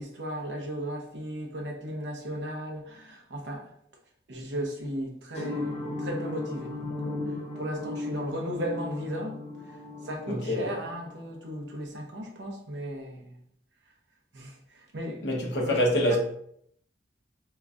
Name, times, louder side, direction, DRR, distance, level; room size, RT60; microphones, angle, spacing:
voice 1, 0.0-3.7 4.3-9.4 9.6-13.4 14.3-15.2 15.7-15.8 16.1-16.2, equal, 80° right, 0.8 m, -36 dB
sound 1, 5.3-11.6, left 2 dB, 35° left, 0.8 m, -36 dB
voice 2, 10.3-10.7 15.2-16.2, equal, 75° left, 0.8 m, -25 dB
2.9 x 2.4 x 3.6 m
head